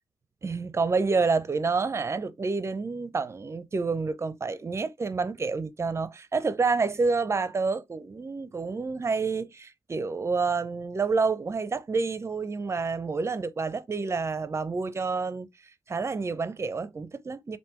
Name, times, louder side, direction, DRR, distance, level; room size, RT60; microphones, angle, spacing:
voice 1, 0.4-15.5 15.9-17.6, right 4 dB, 35° right, 0.5 m, -28 dB
3.4 x 2.6 x 2.8 m
supercardioid pair, 45°, 8 cm